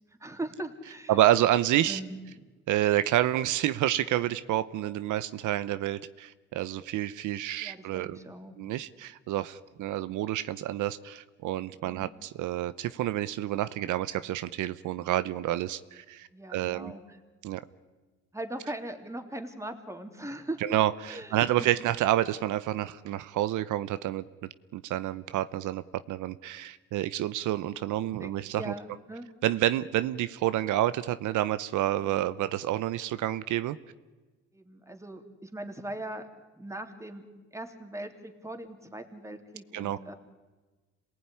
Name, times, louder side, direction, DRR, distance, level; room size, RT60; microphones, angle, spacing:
voice 1, 0.1-1.2 1.9-2.4 7.6-8.5 11.8-12.1 16.3-17.2 18.3-20.6 21.1-21.7 28.2-29.3 34.5-36.3 36.5-40.1, right 1 dB, 10° right, 5 dB, 3.2 m, -40 dB
voice 2, 1.1-2.0 2.7-8.2 8.6-16.9 17.4-17.6 20.6-24.2 24.7-28.7 29.4-33.8 39.7-40.0, right 13 dB, 85° right, 14 dB, 0.9 m, -29 dB
27.0 x 19.0 x 9.9 m, 1.3 s
cardioid pair, 90°, 30 cm